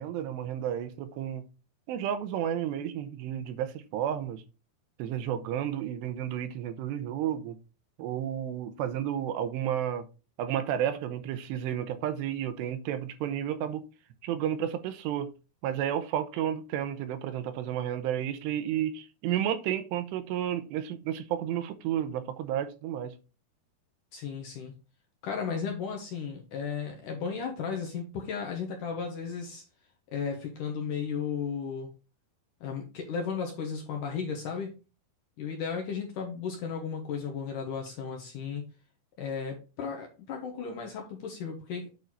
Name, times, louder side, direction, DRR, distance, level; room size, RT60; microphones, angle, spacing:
voice 1, 0.0-1.4 1.9-4.4 5.0-7.6 8.0-10.1 10.4-13.8 14.2-15.3 15.6-23.1, right 10 dB, 90° right, 2.9 m, -32 dB
voice 2, 24.1-24.7 25.2-29.6 30.1-31.9 32.6-34.8 35.4-38.6 39.2-41.9, left 6 dB, 70° left, 2.0 m, -35 dB
8.8 x 4.0 x 4.6 m
omnidirectional pair, 5.0 m